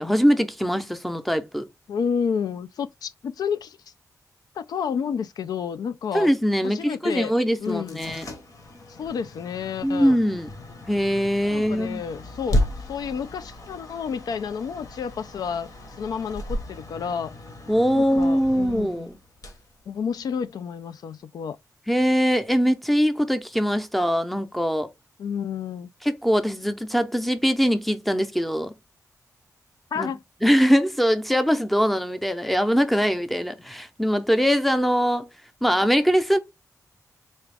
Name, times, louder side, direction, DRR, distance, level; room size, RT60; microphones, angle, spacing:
voice 1, 0.0-1.7 6.1-8.3 9.8-10.5 10.9-12.0 17.7-19.2 21.9-24.9 26.0-28.7 30.0-30.1 30.4-35.3 35.6-36.4, equal, ahead, 0.6 m, -22 dB
voice 2, 1.9-3.8 4.6-6.3 6.6-7.3 7.6-8.0 9.0-10.2 11.5-12.6 12.9-15.7 16.0-17.3 17.9-19.1 19.9-21.6 25.2-25.9 29.9-30.2, left 6 dB, 80° left, 0.3 m, -30 dB
sound 1, 7.6-20.5, left 1 dB, 60° left, 1.0 m, -34 dB
4.0 x 2.3 x 3.3 m
wide cardioid pair, 100°, 7 cm